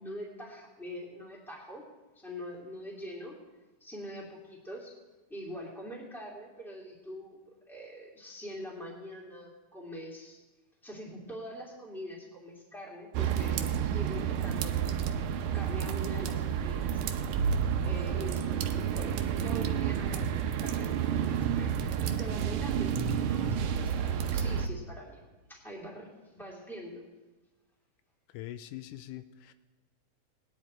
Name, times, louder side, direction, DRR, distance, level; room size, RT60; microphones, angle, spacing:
voice 1, 0.0-1.9 2.1-3.4 3.8-5.0 5.3-7.4 7.7-10.4 10.8-14.8 15.5-16.9 17.8-27.1, equal, ahead, -2 dB, 2.1 m, -44 dB
sound 1, 13.1-24.7, right 8 dB, 80° right, 2.2 m, -30 dB
voice 2, 28.3-29.5, left 13 dB, 85° left, 11 dB, 2.1 m, -43 dB
19.5 x 10.0 x 4.3 m, 1.2 s
omnidirectional pair, 3.6 m